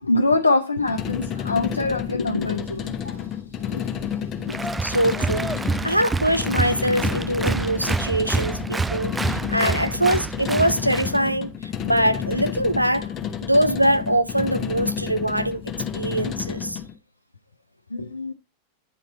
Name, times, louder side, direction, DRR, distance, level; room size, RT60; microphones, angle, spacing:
voice 1, 0.0-3.3 3.6-3.9 4.5-4.6 17.9-18.3, left 2 dB, 80° left, 0.5 m, -24 dB
sound 1, 0.8-16.9, left 8 dB, 25° left, 1.0 m, -30 dB
Applause, 4.5-11.2, right 3 dB, 10° right, 0.3 m, -27 dB
voice 2, 4.8-5.5 5.8-13.1 13.4-16.8, right 1 dB, 90° right, 0.5 m, -23 dB
9.7 x 4.1 x 4.1 m
figure-of-eight pair, 90°, 0 cm